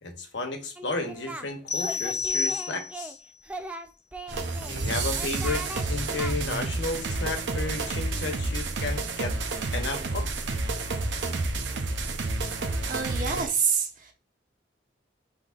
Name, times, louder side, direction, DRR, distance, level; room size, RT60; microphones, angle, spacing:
voice 1, 0.0-3.2 4.6-9.3 9.7-10.3, left 3 dB, 80° left, 1.0 m, -33 dB
Singing, 0.8-1.5 1.8-3.1 3.4-4.7 5.2-5.8 6.2-6.3, right 1 dB, 10° right, 0.3 m, -38 dB
sound 1, 1.7-3.2, left 5 dB, 40° left, 0.8 m, -30 dB
sound 2, 4.3-13.5, right 3 dB, 75° right, 0.7 m, -30 dB
voice 2, 12.9-14.1, right 6 dB, 50° right, 1.1 m, -27 dB
5.7 x 3.5 x 2.5 m
head